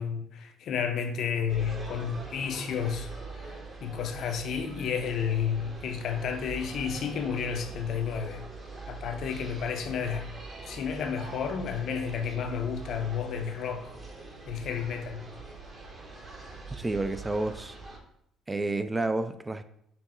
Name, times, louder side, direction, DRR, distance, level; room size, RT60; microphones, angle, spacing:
voice 1, 0.0-3.1 3.8-8.4 8.9-10.3 10.7-13.9 14.5-15.2, left 7 dB, 65° left, 0.5 m, -31 dB
sound 1, 1.5-18.0, right 3 dB, 35° right, 1.0 m, -43 dB
voice 2, 16.7-17.7 18.5-19.6, right 2 dB, 20° right, 0.3 m, -30 dB
5.8 x 2.0 x 3.7 m
supercardioid pair, 80°, 0 cm